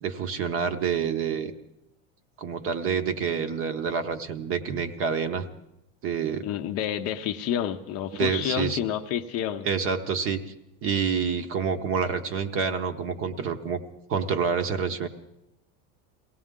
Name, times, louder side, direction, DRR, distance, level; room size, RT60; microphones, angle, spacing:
voice 1, 0.0-1.5 2.4-5.4 6.0-6.4 8.1-8.8 9.6-10.4 10.8-13.8 14.1-15.1, right 6 dB, 30° right, 9 dB, 0.8 m, -27 dB
voice 2, 6.4-9.7, left 10 dB, 35° left, 7 dB, 0.6 m, -29 dB
22.5 x 17.0 x 3.7 m, 0.83 s
cardioid pair, 160°, 41 cm